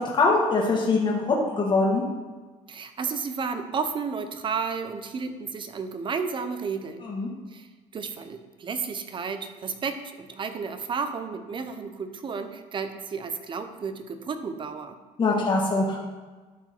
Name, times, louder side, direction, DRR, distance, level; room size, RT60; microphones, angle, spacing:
voice 1, 0.2-2.0 7.0-7.3 15.2-16.0, left 3 dB, 30° left, -3 dB, 1.9 m, -23 dB
voice 2, 2.7-7.1 7.5-7.7 7.9-15.0, right 5 dB, 35° right, 9 dB, 0.8 m, -32 dB
11.5 x 4.5 x 4.4 m, 1.3 s
cardioid pair, 110°, 15 cm